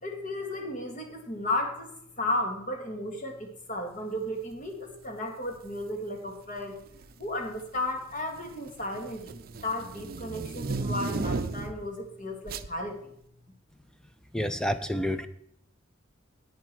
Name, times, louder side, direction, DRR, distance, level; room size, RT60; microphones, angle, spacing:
voice 1, 0.0-6.8 7.2-13.1, left 1 dB, 40° left, 4 dB, 1.8 m, -34 dB
sound 1, 5.5-5.8 6.8-7.3 7.6-11.9 12.5-12.7, right 3 dB, 50° right, 0.5 m, -35 dB
voice 2, 14.3-15.3, equal, 5° left, 11 dB, 0.3 m, -29 dB
10.5 x 8.6 x 4.5 m, 0.71 s
head